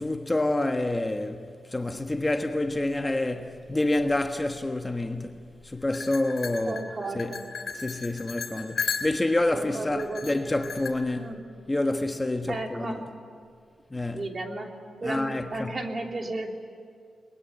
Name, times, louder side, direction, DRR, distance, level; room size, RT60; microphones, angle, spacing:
voice 1, 0.0-5.4 5.6-6.8 7.1-7.4 7.7-11.3 11.7-13.0 13.9-14.3 15.0-15.7, left 2 dB, 20° left, 1.3 m, -28 dB
sound 1, 5.9-9.4 10.0-10.9, left 5 dB, 65° left, 3.4 m, -35 dB
voice 2, 6.7-7.5 9.5-10.5 11.1-11.4 12.5-13.0 14.1-14.7 15.0-16.5, right 2 dB, 40° right, 3.3 m, -34 dB
22.5 x 21.0 x 9.4 m
cardioid pair, 75°, 0 cm